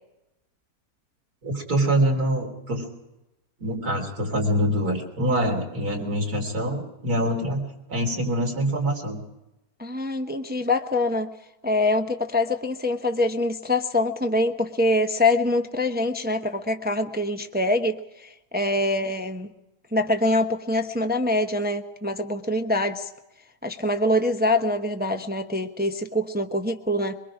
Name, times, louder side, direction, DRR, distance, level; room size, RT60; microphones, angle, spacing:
voice 1, 1.4-2.8 3.6-7.6 7.9-9.2, right 1 dB, 70° right, 2 dB, 4.1 m, -25 dB
voice 2, 9.8-11.3 11.6-19.5 19.9-23.1 23.6-27.2, left 1 dB, 10° right, 5 dB, 0.7 m, -24 dB
23.0 x 23.0 x 5.0 m, 0.95 s
omnidirectional pair, 1.7 m